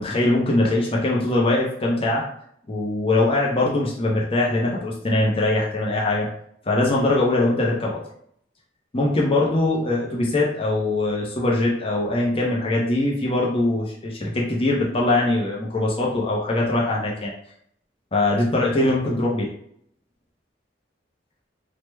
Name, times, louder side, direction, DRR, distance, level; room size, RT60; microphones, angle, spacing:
voice 1, 0.0-2.2 2.7-6.3 6.7-8.0 8.9-17.3 18.1-19.5, left 2 dB, 30° left, -3 dB, 0.6 m, -22 dB
3.3 x 2.1 x 3.1 m, 0.69 s
head